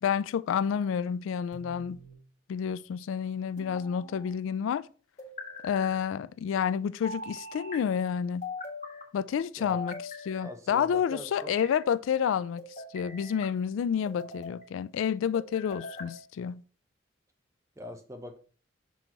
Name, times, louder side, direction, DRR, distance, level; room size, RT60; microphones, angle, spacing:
voice 1, 0.0-2.0 2.5-4.9 5.6-8.5 9.1-12.6 12.9-16.6, left 7 dB, 85° left, 0.3 m, -29 dB
sound 1, 1.5-2.2 3.6-4.3 5.2-5.9 7.0-7.8 8.4-9.1 9.7-10.5 11.2-11.8 12.6-13.5 14.0-14.6 15.3-16.1, left 3 dB, 35° left, 1.6 m, -42 dB
voice 2, 10.4-11.6 17.8-18.4, left 1 dB, 15° right, 0.7 m, -43 dB
6.3 x 3.8 x 4.6 m
head